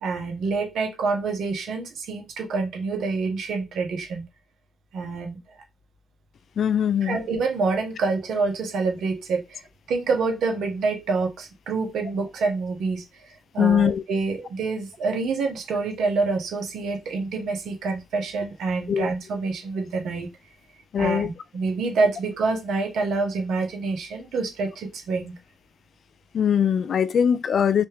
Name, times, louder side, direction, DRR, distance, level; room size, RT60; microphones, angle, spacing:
voice 1, 0.0-4.2 4.9-5.4 7.0-9.6 9.9-20.3 21.0-25.3, right 4 dB, 75° right, 1.1 m, -27 dB
voice 2, 6.6-7.2 13.6-14.0 18.9-19.1 20.9-21.3 26.3-27.8, left 8 dB, 65° left, 0.4 m, -21 dB
3.2 x 2.9 x 3.2 m
supercardioid pair, 60°, 0 cm